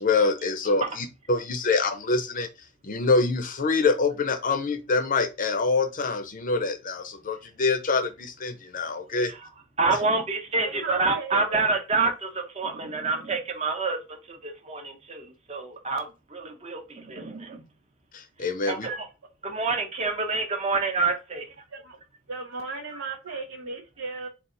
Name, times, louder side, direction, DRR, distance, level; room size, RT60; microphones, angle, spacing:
voice 1, 0.0-2.5 2.8-9.3 18.1-18.9, left 4 dB, 40° left, 0.6 m, -25 dB
voice 2, 9.8-17.6 18.7-19.1 19.4-21.5, right 3 dB, 30° right, 0.7 m, -27 dB
voice 3, 10.5-11.6 21.3-21.5 21.7-22.0 22.3-24.3, right 4 dB, 75° right, 0.6 m, -36 dB
4.0 x 2.4 x 3.7 m
head